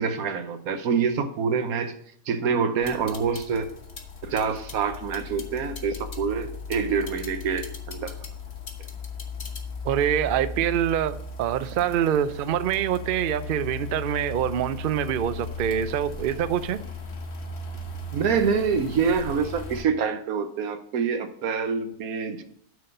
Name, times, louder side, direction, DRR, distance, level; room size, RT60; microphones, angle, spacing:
voice 1, 0.0-1.9 2.3-3.7 4.2-8.1 18.1-22.4, right 6 dB, 90° right, 9 dB, 1.3 m, -26 dB
sound 1, 2.8-19.8, left 3 dB, 50° left, 1.3 m, -37 dB
voice 2, 9.8-16.8, right 10 dB, 70° right, 14 dB, 0.5 m, -25 dB
9.5 x 4.1 x 6.6 m, 0.70 s
omnidirectional pair, 1.5 m